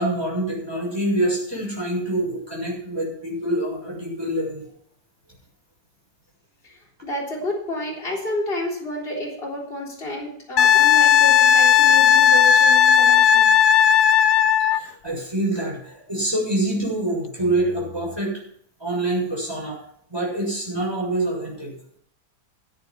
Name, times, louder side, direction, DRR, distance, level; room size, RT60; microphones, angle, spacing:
voice 1, 0.0-4.6 14.7-18.3 18.8-19.8 20.1-21.7, right 1 dB, 15° right, -2 dB, 6.9 m, -25 dB
voice 2, 6.6-13.5, left 1 dB, 30° left, -3 dB, 4.0 m, -30 dB
Wind instrument woodwind instrument, 10.6-14.8 17.5-17.6, left 8 dB, 60° left, 0.7 m, -15 dB
14.5 x 9.4 x 5.8 m, 0.66 s
omnidirectional pair, 1.9 m